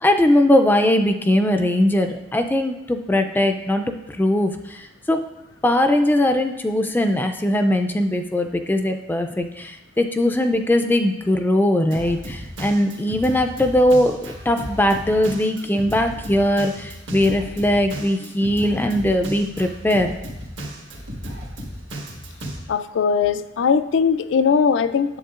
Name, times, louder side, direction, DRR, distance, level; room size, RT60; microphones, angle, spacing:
voice 1, 0.0-5.2 5.6-20.1, left 1 dB, 10° left, 6 dB, 0.3 m, -20 dB
Drum kit, 11.9-22.6, equal, 80° right, 1.5 m, -35 dB
voice 2, 22.7-25.2, left 6 dB, 85° left, 13 dB, 0.4 m, -20 dB
10.0 x 7.7 x 2.4 m, 0.96 s
head